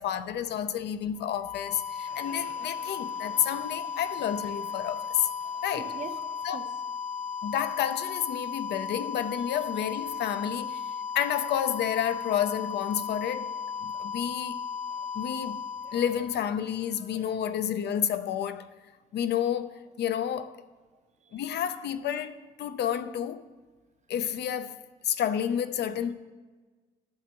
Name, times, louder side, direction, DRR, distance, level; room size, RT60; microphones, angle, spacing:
voice 1, 0.0-5.3 5.6-5.9 6.4-6.6 7.4-10.8 11.1-13.5 13.8-14.6 15.1-15.6 15.9-18.7 19.1-20.6 21.3-23.4 24.1-26.1, left 9 dB, 60° left, 0.6 m, -30 dB
sound 1, 1.2-17.0, left 6 dB, 40° left, 1.1 m, -36 dB
Crowd, 1.9-7.3, left 3 dB, 75° left, 2.7 m, -55 dB
voice 2, 5.8-6.7 14.9-15.0 15.8-16.0 17.0-17.2 21.3-21.4, right 5 dB, 35° right, 0.8 m, -43 dB
12.5 x 7.4 x 3.0 m
supercardioid pair, 70°, 20 cm